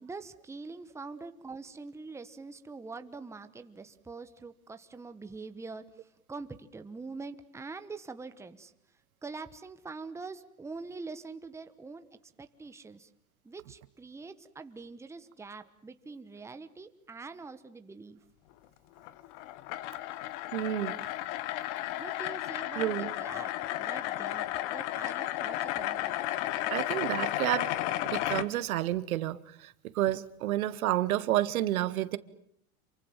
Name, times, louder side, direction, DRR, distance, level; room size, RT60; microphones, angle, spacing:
voice 1, 0.0-8.7 9.2-12.1 12.4-13.1 13.4-18.2 21.9-23.5 23.8-26.2, right 4 dB, 5° right, 1.2 m, -44 dB
sound 1, 19.0-28.5, left 14 dB, 55° left, 1.5 m, -33 dB
voice 2, 20.5-21.0 22.7-23.1 26.7-27.7 28.1-32.2, right 14 dB, 75° right, 1.5 m, -30 dB
28.0 x 24.0 x 7.4 m
supercardioid pair, 130°, 42 cm